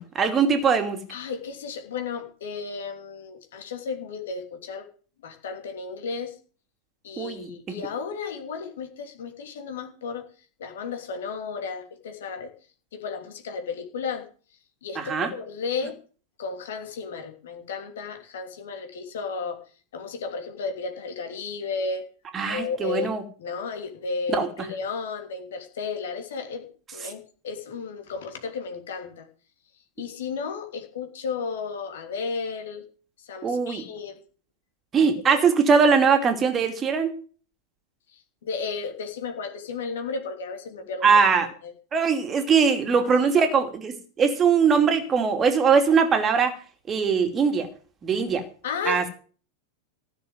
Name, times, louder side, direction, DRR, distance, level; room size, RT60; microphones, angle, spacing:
voice 1, 0.1-1.0 7.2-7.5 15.0-15.3 22.3-23.2 24.3-24.5 33.4-33.8 34.9-37.1 41.0-41.5 41.9-46.5 46.9-47.7 48.0-48.4 48.9-49.0, right 5 dB, 25° right, 6 dB, 2.6 m, -21 dB
voice 2, 1.1-4.9 5.2-6.4 7.0-10.3 10.6-12.5 12.9-14.3 14.8-16.0 16.4-19.6 19.9-22.0 22.5-23.1 23.4-29.3 30.0-32.8 33.2-34.2 35.2-35.4 38.1-41.1 41.6-41.7 43.0-43.1 43.3-43.5 48.6-49.1, left 5 dB, 60° left, 5 dB, 3.1 m, -33 dB
15.5 x 6.9 x 8.0 m, 0.40 s
figure-of-eight pair, 90°, 0 cm